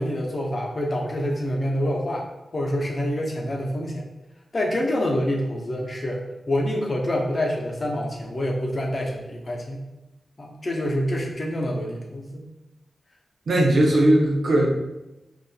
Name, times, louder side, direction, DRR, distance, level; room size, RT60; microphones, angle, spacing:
voice 1, 0.0-2.3 2.5-4.0 4.5-9.8 10.4-12.4, left 1 dB, 45° left, 0 dB, 0.7 m, -26 dB
voice 2, 13.5-14.7, right 1 dB, 75° right, -1 dB, 0.7 m, -18 dB
3.9 x 2.5 x 2.3 m, 0.97 s
cardioid pair, 55°, 0 cm